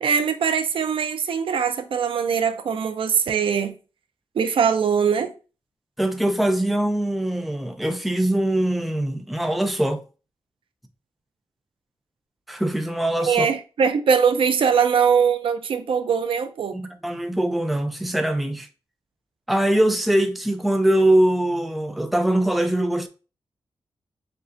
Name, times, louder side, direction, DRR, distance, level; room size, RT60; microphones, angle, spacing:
voice 1, 0.0-3.7 4.4-5.3 13.3-16.8, right 6 dB, 75° right, 0.5 m, -21 dB
voice 2, 6.0-10.0 12.5-13.5 16.7-18.7 19.5-23.1, right 1 dB, ahead, 0.4 m, -22 dB
6.6 x 2.4 x 2.5 m
wide cardioid pair, 165°, 9 cm